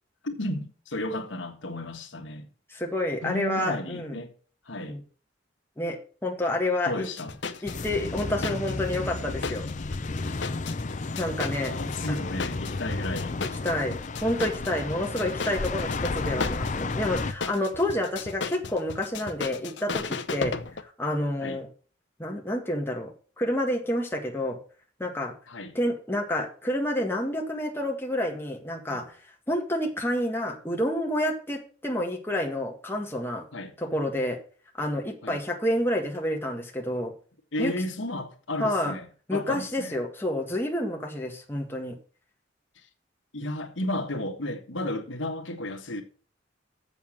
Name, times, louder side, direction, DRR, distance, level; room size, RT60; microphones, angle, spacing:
voice 1, 0.2-2.5 3.2-4.3 4.6-5.0 6.8-7.3 11.7-13.4 21.4-21.6 25.5-25.7 28.9-29.0 33.5-33.7 35.2-35.4 37.5-39.9 43.3-46.0, left 1 dB, 90° left, 1.6 m, -33 dB
voice 2, 2.7-4.2 4.9-5.0 5.8-7.1 7.6-9.7 11.2-11.8 13.6-13.9 14.2-20.0 20.3-20.6 21.0-21.7 22.2-23.1 23.4-24.6 25.0-25.3 25.7-29.0 29.5-33.4 33.8-34.4 34.8-37.1 37.6-37.7 38.6-38.9 39.3-41.9, left 1 dB, 10° left, 1.8 m, -29 dB
sound 1, 7.0-20.8, left 4 dB, 65° left, 0.9 m, -35 dB
sound 2, 7.7-17.3, left 3 dB, 40° left, 0.6 m, -33 dB
7.3 x 7.1 x 7.2 m
head